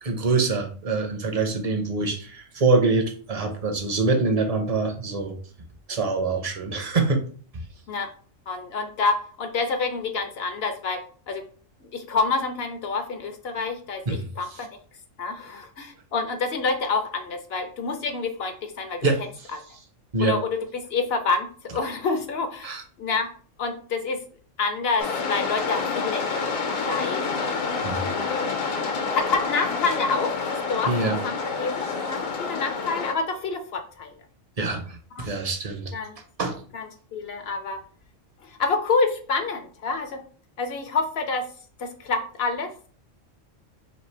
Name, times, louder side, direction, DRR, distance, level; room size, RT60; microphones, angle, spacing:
voice 1, 0.0-5.3 5.9-7.2 14.1-14.3 14.6-14.7 19.0-19.2 20.1-20.4 22.6-22.8 27.8-28.0 30.8-31.2 34.6-35.9 36.4-36.6, right 3 dB, 40° right, 5 dB, 0.5 m, -24 dB
voice 2, 8.5-11.4 11.9-14.7 15.2-19.1 20.2-23.3 23.6-24.2 24.6-26.5 26.8-28.4 29.1-34.2 35.2-35.3 35.9-36.1 36.7-37.8 38.4-40.2 40.6-41.5 41.8-42.7, left 4 dB, 65° left, 7 dB, 0.7 m, -28 dB
sound 1, 25.0-33.1, left 4 dB, 85° left, 1.3 m, -28 dB
3.3 x 2.8 x 4.3 m, 0.43 s
omnidirectional pair, 1.3 m